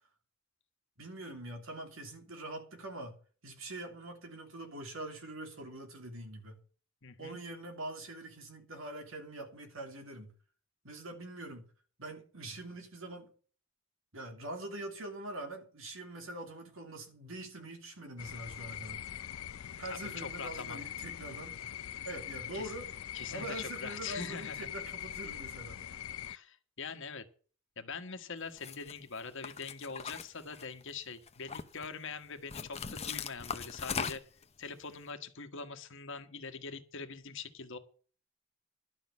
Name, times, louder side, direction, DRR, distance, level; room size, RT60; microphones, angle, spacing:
voice 1, 1.0-6.6 7.2-10.3 10.8-11.7 12.0-13.3 14.1-19.0 19.8-21.8 22.0-22.9 23.3-25.8, right 1 dB, 70° right, 3.1 m, -44 dB
voice 2, 7.0-7.4 19.9-20.8 22.5-22.7 23.1-24.7 26.3-27.3 27.8-34.2 34.6-37.8, left 5 dB, 65° left, 1.5 m, -43 dB
sound 1, 18.2-26.4, left 10 dB, 90° left, 0.5 m, -43 dB
sound 2, 28.6-28.9 29.4-30.9 31.3-31.9 32.5-34.4, left 6 dB, 30° left, 0.8 m, -39 dB
12.0 x 6.2 x 8.3 m
head